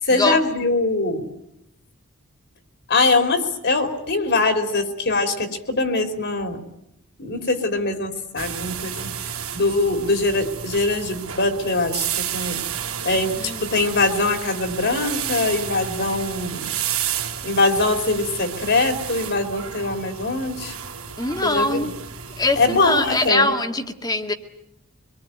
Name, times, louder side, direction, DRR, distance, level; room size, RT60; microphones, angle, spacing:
voice 1, 0.0-1.3 2.9-6.6 7.2-9.2 9.5-12.6 13.0-16.7 17.4-20.7 21.4-22.0 22.6-23.5, left 3 dB, 55° left, 7 dB, 3.5 m, -22 dB
sound 1, 8.4-23.3, right 8 dB, 75° right, 2.9 m, -31 dB
voice 2, 21.2-21.9 22.4-24.3, left 2 dB, 20° left, 6 dB, 2.0 m, -22 dB
25.5 x 22.5 x 9.3 m, 0.78 s
head